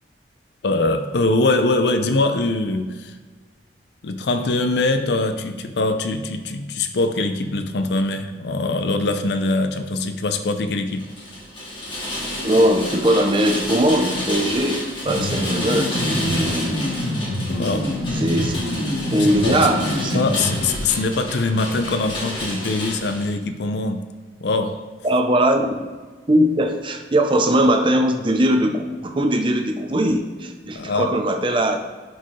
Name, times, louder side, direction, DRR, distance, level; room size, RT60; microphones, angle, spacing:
voice 1, 0.6-3.1 4.0-11.1 17.6-17.9 19.2-19.6 20.1-24.0 24.4-24.8 30.8-31.1, left 2 dB, 65° left, 7 dB, 0.5 m, -22 dB
Rain, 10.9-23.3, left 1 dB, 30° left, 2.1 m, -30 dB
voice 2, 12.4-16.8 18.1-18.5 19.1-20.4 25.0-25.7 26.3-31.8, right 1 dB, 30° right, 5 dB, 0.6 m, -20 dB
sound 1, 15.0-20.7, left 1 dB, 80° left, 1.3 m, -26 dB
11.0 x 4.4 x 3.2 m, 1.4 s
head